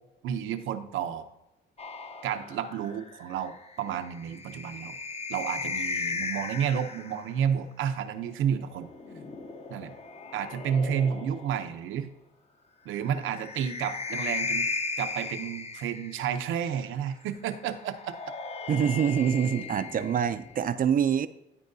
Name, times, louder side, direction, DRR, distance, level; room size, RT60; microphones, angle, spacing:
voice 1, 0.2-1.3 2.2-5.0 5.3-8.9 9.7-9.9 10.3-12.1 12.9-14.7 15.0-18.1, right 8 dB, 85° right, 8 dB, 0.7 m, -31 dB
sound 1, 1.8-7.3 8.7-11.7 13.0-16.5 17.8-20.7, left 4 dB, 30° left, 0.8 m, -36 dB
voice 2, 18.7-21.3, right 8 dB, 45° right, 12 dB, 0.4 m, -25 dB
13.5 x 4.6 x 2.7 m, 0.95 s
cardioid pair, 90°, 20 cm